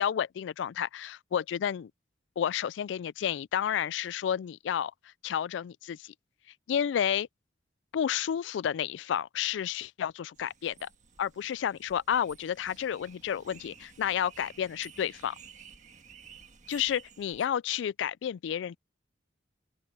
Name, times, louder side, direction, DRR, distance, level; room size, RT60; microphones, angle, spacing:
voice 1, 0.0-1.9 2.4-4.9 5.2-6.1 6.7-7.3 7.9-10.9 11.2-15.4 16.7-18.8, left 9 dB, 75° left, 0.3 m, -31 dB
sound 1, 10.3-17.5, right 6 dB, 40° right, 1.7 m, -53 dB
open air
head